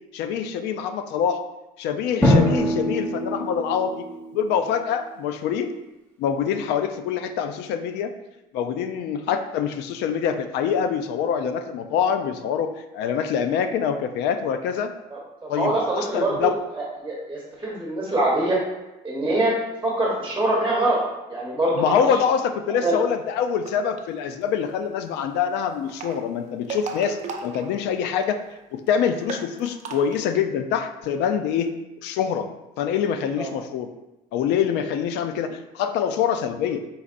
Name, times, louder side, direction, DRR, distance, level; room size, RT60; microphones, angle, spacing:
voice 1, 0.1-1.4 1.8-4.0 4.3-5.7 6.2-8.1 8.5-14.9 15.5-16.6 21.8-28.4 28.7-31.7 32.0-32.5 32.8-33.9 34.3-36.8, left 7 dB, 90° left, 8 dB, 0.4 m, -25 dB
Drum, 2.2-4.7, left 1 dB, 10° left, 0.9 m, -22 dB
voice 2, 15.6-16.5 17.0-18.6 19.0-19.5 19.8-21.0 21.3-22.0 22.7-23.0 33.4-33.5, right 1 dB, 15° right, -4 dB, 1.0 m, -23 dB
sound 1, 23.5-24.0 25.7-28.3 28.6-28.7 28.9-29.0 29.2-30.2, right 4 dB, 45° right, 0.6 m, -35 dB
4.0 x 4.0 x 2.5 m, 0.99 s
cardioid pair, 110°, 17 cm